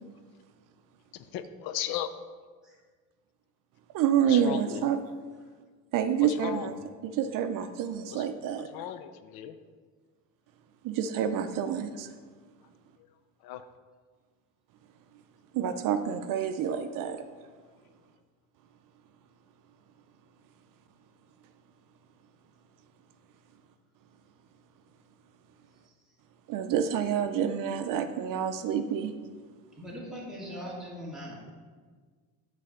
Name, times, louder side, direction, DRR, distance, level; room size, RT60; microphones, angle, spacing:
voice 1, 1.1-2.1 4.2-4.9 6.2-6.7 8.1-8.2 8.6-9.6 13.4-13.7, left 11 dB, 80° left, 11 dB, 0.6 m, -36 dB
voice 2, 3.9-5.0 5.9-6.7 7.0-8.7 10.8-12.1 15.5-17.2 26.5-29.1, right 8 dB, 60° right, 9 dB, 0.5 m, -28 dB
voice 3, 29.8-31.3, equal, ahead, -6 dB, 2.0 m, -40 dB
8.3 x 3.4 x 6.5 m, 1.5 s
cardioid pair, 130°, 36 cm